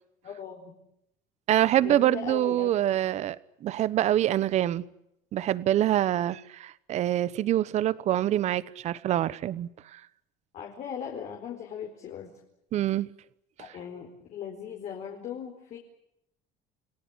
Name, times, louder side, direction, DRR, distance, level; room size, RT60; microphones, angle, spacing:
voice 1, 0.2-0.7 1.8-2.7 10.5-12.3 13.6-15.8, left 8 dB, 50° left, 4.3 m, -38 dB
voice 2, 1.5-4.8 5.3-10.0 12.7-13.1 13.6-13.7, right 12 dB, 45° right, 1.1 m, -25 dB
29.0 x 18.0 x 9.9 m
cardioid pair, 140°, 15 cm